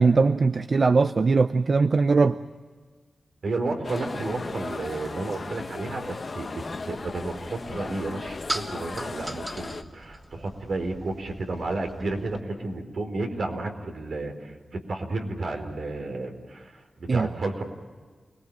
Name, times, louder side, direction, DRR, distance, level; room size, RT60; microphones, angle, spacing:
voice 1, 0.0-2.4 17.1-17.3, right 4 dB, 55° right, 0.7 m, -20 dB
voice 2, 3.4-16.7 17.0-17.6, right 2 dB, 75° right, 4.5 m, -32 dB
sound 1, 3.8-9.8, left 3 dB, 50° left, 1.0 m, -37 dB
sound 2, 6.9-12.4, right 1 dB, 15° right, 2.8 m, -40 dB
29.0 x 20.0 x 8.7 m
wide cardioid pair, 95°, 0 cm